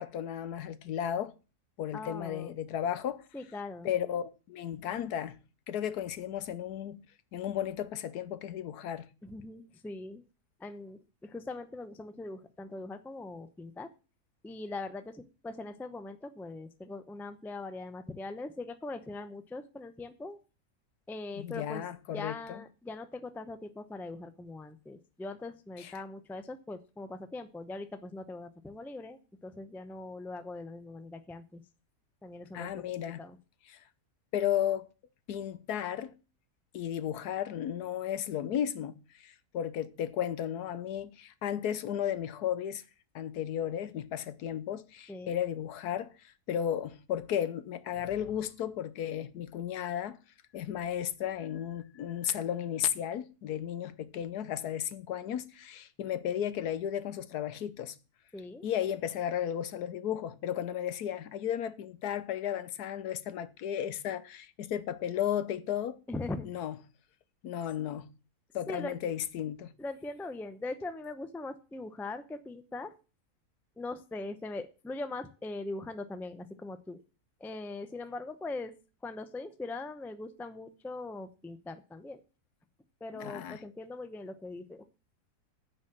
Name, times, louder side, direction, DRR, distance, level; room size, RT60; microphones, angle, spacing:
voice 1, 0.0-1.3 1.8-3.2 3.8-5.4 5.7-7.0 7.3-9.1 21.4-22.6 25.8-25.9 32.5-33.2 34.3-34.9 35.3-36.1 36.7-42.8 43.1-50.2 50.5-58.0 58.6-66.0 66.4-66.7 67.4-68.1 68.5-69.7 83.1-83.6, left 10 dB, 85° left, 1.3 m, -34 dB
voice 2, 1.9-2.5 3.3-3.9 9.2-10.2 10.6-13.9 14.4-20.4 21.1-21.8 22.1-31.6 32.2-32.8 33.2-33.4 45.1-45.4 58.3-58.7 66.1-66.5 68.7-69.0 69.8-72.9 73.8-77.0 77.4-78.7 79.0-82.2 83.0-84.9, left 2 dB, 5° left, 0.4 m, -41 dB
9.7 x 5.1 x 7.6 m
omnidirectional pair, 1.7 m